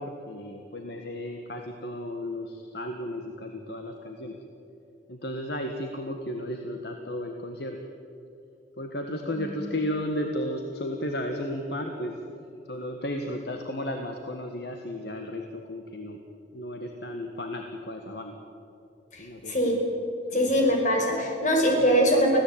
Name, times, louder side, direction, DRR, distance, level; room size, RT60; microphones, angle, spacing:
voice 1, 0.0-4.4 5.1-7.8 8.8-12.2 12.7-16.2 16.5-18.4 19.2-19.8 20.3-20.7, left 1 dB, 60° left, 4 dB, 1.6 m, -34 dB
voice 2, 19.1-19.8 20.3-22.4, equal, 40° left, 1 dB, 5.0 m, -23 dB
25.0 x 16.5 x 8.8 m, 2.8 s
head